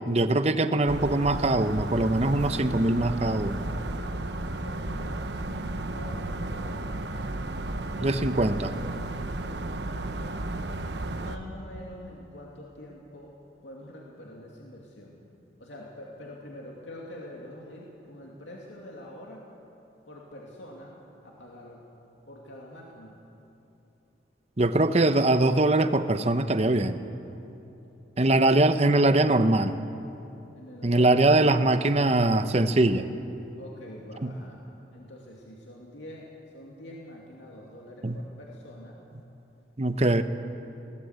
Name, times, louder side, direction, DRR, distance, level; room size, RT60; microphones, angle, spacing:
voice 1, 0.1-3.6 8.0-8.7 24.6-27.0 28.2-29.8 30.8-33.1 38.0-38.2 39.8-40.2, right 2 dB, 35° right, 10 dB, 0.8 m, -22 dB
sound 1, 0.9-11.4, right 2 dB, 65° right, 1.1 m, -33 dB
voice 2, 3.7-7.3 7.8-9.7 9.9-10.5 11.2-13.3 13.6-15.2 15.6-19.5 20.1-21.0 21.2-21.9 22.3-23.2 28.3-28.5 30.6-31.4 33.6-34.6 34.9-39.0, left 1 dB, 80° left, -2 dB, 2.6 m, -45 dB
22.0 x 18.5 x 8.2 m, 3.0 s
head